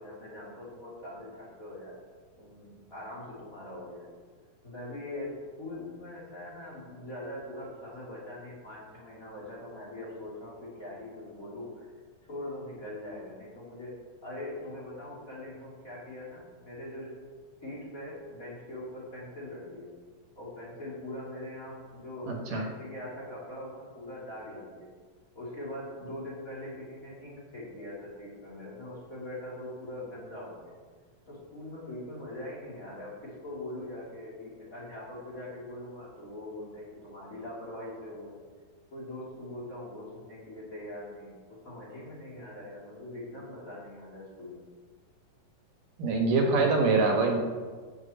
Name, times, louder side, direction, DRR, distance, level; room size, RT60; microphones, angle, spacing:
voice 1, 0.0-1.9 2.4-4.2 4.6-11.9 12.3-13.9 14.2-17.1 17.6-19.9 20.3-24.9 25.3-30.7 31.2-38.4 38.9-44.6, left 1 dB, 25° left, -6 dB, 2.9 m, -42 dB
voice 2, 22.3-22.6 46.0-47.4, right 3 dB, 70° right, 1 dB, 2.9 m, -24 dB
14.5 x 7.7 x 4.3 m, 1.5 s
omnidirectional pair, 4.0 m